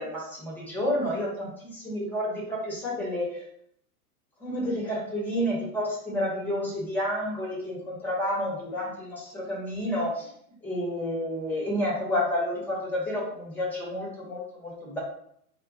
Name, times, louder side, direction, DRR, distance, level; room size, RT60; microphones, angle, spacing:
voice 1, 0.0-3.4 4.4-10.3 10.6-15.0, left 1 dB, 5° left, -4 dB, 0.7 m, -30 dB
2.2 x 2.0 x 3.8 m, 0.68 s
figure-of-eight pair, 95°, 45 cm